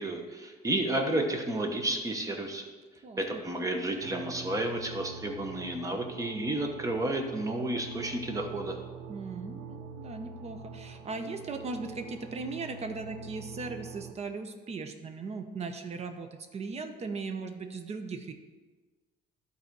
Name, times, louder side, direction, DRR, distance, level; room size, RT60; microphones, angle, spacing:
voice 1, 0.0-2.7 3.2-8.8, right 1 dB, 20° right, 3 dB, 1.1 m, -31 dB
voice 2, 3.0-3.4 9.1-18.3, right 4 dB, 40° right, 6 dB, 0.7 m, -38 dB
sound 1, 4.0-14.1, right 5 dB, 90° right, 0.6 m, -45 dB
11.0 x 4.1 x 4.7 m, 1.4 s
cardioid pair, 110°, 17 cm